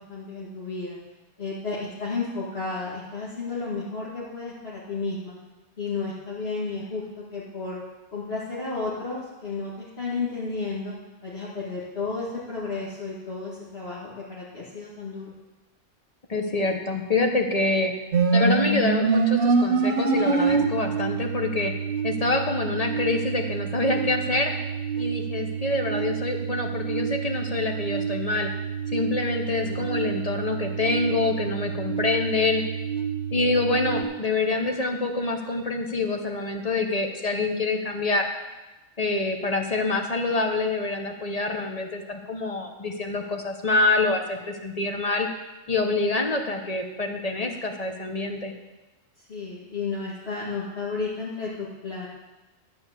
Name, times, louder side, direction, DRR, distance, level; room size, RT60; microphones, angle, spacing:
voice 1, 0.1-1.0 1.4-5.3 5.8-7.8 8.1-10.9 11.2-15.3 29.6-29.9 49.3-52.1, left 4 dB, 55° left, -8 dB, 2.3 m, -32 dB
voice 2, 16.3-17.9 18.3-21.7 22.0-24.5 25.0-28.5 28.9-32.6 33.3-38.3 39.0-45.3 45.7-48.5, left 3 dB, 30° left, 4 dB, 1.1 m, -26 dB
sound 1, 18.1-34.0, right 5 dB, 60° right, 1.2 m, -27 dB
12.5 x 5.1 x 8.3 m, 1.1 s
omnidirectional pair, 1.3 m